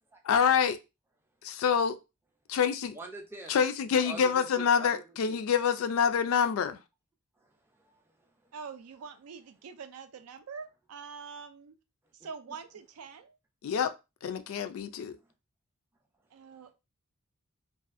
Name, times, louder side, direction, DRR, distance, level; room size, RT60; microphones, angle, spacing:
voice 1, 0.2-0.8 1.4-2.0 2.5-3.0 3.5-6.8 13.6-13.9 14.2-15.1, left 7 dB, 65° left, 0.3 m, -26 dB
voice 2, 2.9-3.6 4.0-5.4 7.4-7.5 7.8-8.0 16.5-16.7, right 3 dB, 10° right, 0.4 m, -45 dB
voice 3, 8.5-11.8 12.2-13.4 16.3-16.7, right 5 dB, 80° right, 0.4 m, -45 dB
2.5 x 2.3 x 2.5 m
head